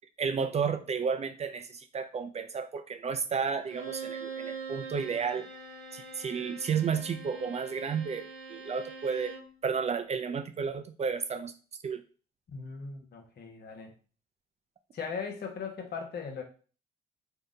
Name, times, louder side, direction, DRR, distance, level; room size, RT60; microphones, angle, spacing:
voice 1, 0.2-5.5 5.9-9.3 9.6-11.5 11.8-12.0, right 6 dB, 35° right, 7 dB, 0.4 m, -32 dB
Bowed string instrument, 3.6-9.5, right 4 dB, 80° right, 0.8 m, -43 dB
voice 2, 12.5-13.9 14.9-16.4, left 5 dB, 60° left, 2 dB, 0.9 m, -38 dB
2.8 x 2.1 x 3.7 m, 0.38 s
supercardioid pair, 60°, 19 cm